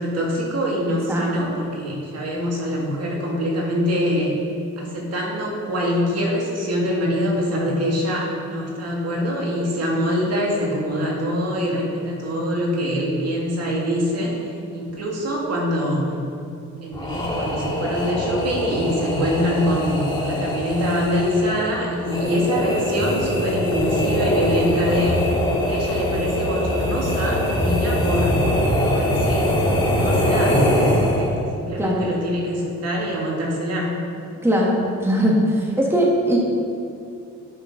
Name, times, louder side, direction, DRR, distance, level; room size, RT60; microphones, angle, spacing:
voice 1, 0.0-4.3 4.8-16.0 16.8-25.2 25.7-28.4 28.9-29.6 29.9-33.9, equal, 55° right, -2 dB, 2.0 m, -24 dB
voice 2, 1.1-1.5 31.8-32.0 34.4-36.4, equal, 10° right, -2 dB, 1.4 m, -20 dB
sound 1, 16.9-31.5, left 1 dB, 15° left, 1.8 m, -23 dB
11.0 x 5.7 x 3.8 m, 2.6 s
cardioid pair, 90°, 30 cm